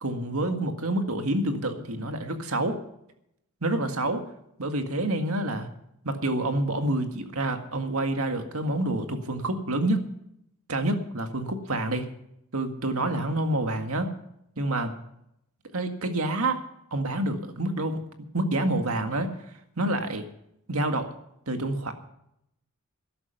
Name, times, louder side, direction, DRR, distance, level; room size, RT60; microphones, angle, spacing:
voice 1, 0.0-2.8 3.6-4.2 4.6-5.7 6.0-10.0 10.7-12.1 12.5-14.1 14.6-14.9 15.7-16.6 16.9-18.0 18.3-19.3 19.8-20.3 20.7-21.1 21.5-21.9, right 1 dB, 75° right, 6 dB, 1.8 m, -27 dB
13.0 x 11.5 x 5.7 m, 0.77 s
head